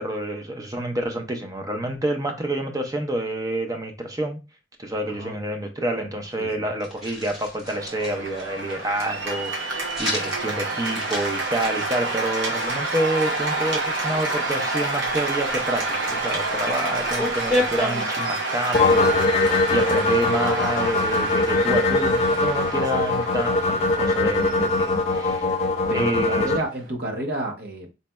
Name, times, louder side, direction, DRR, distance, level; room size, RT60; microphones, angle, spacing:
voice 1, 0.0-4.4 4.8-25.5 25.9-26.5, right 1 dB, 15° right, 0.6 m, -28 dB
voice 2, 6.4-6.7 25.9-27.9, right 1 dB, 50° right, 0.9 m, -30 dB
sound 1, 6.8-8.5 10.0-10.5 10.8-12.7 13.3-13.5 15.1-15.5 16.4-16.5 16.7-18.0, left 1 dB, ahead, 1.3 m, -30 dB
Cheering / Applause, 7.6-26.9, right 2 dB, 70° right, 1.2 m, -29 dB
sound 2, 18.7-26.6, left 2 dB, 30° left, 0.3 m, -22 dB
4.1 x 3.2 x 2.2 m
head